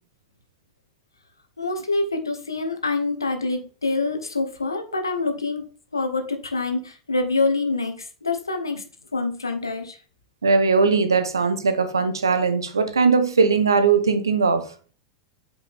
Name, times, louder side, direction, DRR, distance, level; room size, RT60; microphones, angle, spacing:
voice 1, 1.6-5.7 5.9-8.8 9.1-10.0, left 3 dB, 85° left, 1.2 m, -26 dB
voice 2, 10.4-14.7, right 4 dB, 80° right, 1.0 m, -19 dB
8.4 x 4.7 x 3.7 m
figure-of-eight pair, 85°, 2 cm